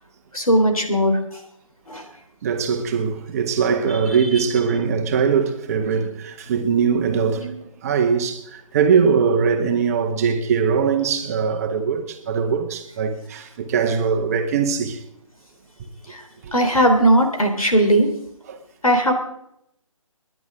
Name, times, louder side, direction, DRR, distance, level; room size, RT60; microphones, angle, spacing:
voice 1, 0.3-1.2 1.9-2.0 16.1-16.2 16.5-18.1 18.8-19.1, right 1 dB, 85° left, 3.6 m, -17 dB
voice 2, 2.4-15.0 16.4-16.5 18.5-18.6, right 6 dB, 25° right, 1.4 m, -21 dB
27.0 x 10.5 x 3.8 m
figure-of-eight pair, 145°, 18 cm